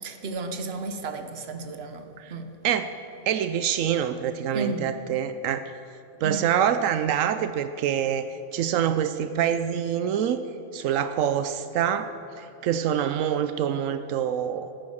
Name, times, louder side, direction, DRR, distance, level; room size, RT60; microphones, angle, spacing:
voice 1, 0.0-2.6 4.5-5.0 6.2-6.5, right 3 dB, 55° right, 7 dB, 1.2 m, -33 dB
voice 2, 3.3-5.7 6.2-10.4 10.7-14.7, right 9 dB, 85° right, 10 dB, 1.0 m, -26 dB
14.0 x 9.5 x 6.3 m, 3.0 s
omnidirectional pair, 1.3 m